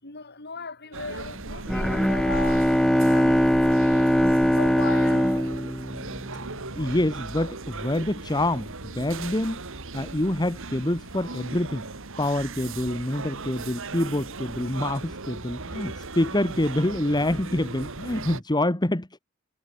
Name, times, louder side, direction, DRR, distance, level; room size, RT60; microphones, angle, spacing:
voice 1, 0.0-5.3, left 4 dB, 50° left, 6.7 m, -38 dB
sound 1, 0.9-18.4, right 3 dB, 65° right, 2.3 m, -37 dB
Bowed string instrument, 1.7-6.6, equal, ahead, 0.6 m, -21 dB
voice 2, 6.8-9.6 9.9-11.8 12.2-19.2, left 1 dB, 20° left, 1.5 m, -26 dB
head